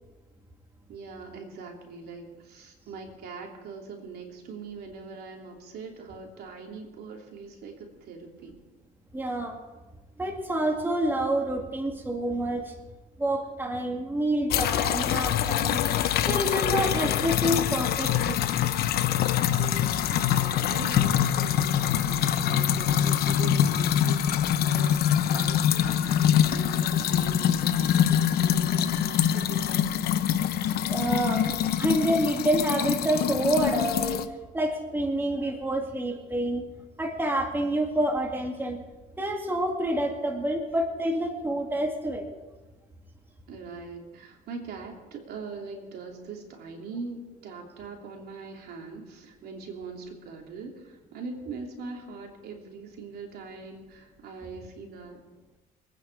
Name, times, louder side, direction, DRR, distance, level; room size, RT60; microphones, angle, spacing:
voice 1, 0.9-8.6 19.5-30.1 43.5-55.2, right 4 dB, 70° right, 1 dB, 3.1 m, -41 dB
voice 2, 9.1-9.6 10.2-12.7 13.2-15.8 16.3-18.5 30.9-34.3 34.5-36.7 37.0-38.8 39.2-42.3, right 1 dB, 10° right, 2 dB, 2.1 m, -28 dB
sound 1, 14.5-34.3, left 10 dB, 70° left, 0.9 m, -24 dB
24.5 x 9.5 x 4.8 m, 1.2 s
cardioid pair, 110°, 17 cm